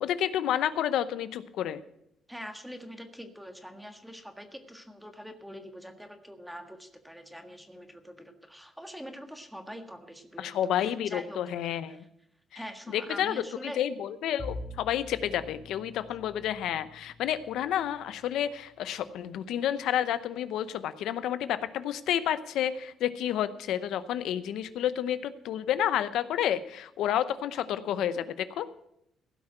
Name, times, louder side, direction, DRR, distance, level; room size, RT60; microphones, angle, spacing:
voice 1, 0.0-1.8 10.4-12.0 12.5-12.6 12.9-28.7, left 10 dB, 85° left, 13 dB, 0.7 m, -30 dB
voice 2, 2.3-12.1 12.5-13.8, equal, 5° right, 5 dB, 1.6 m, -44 dB
Bowed string instrument, 14.4-19.5, left 2 dB, 40° left, 3.0 m, -46 dB
16.0 x 6.0 x 7.7 m, 0.78 s
cardioid pair, 90°, 0 cm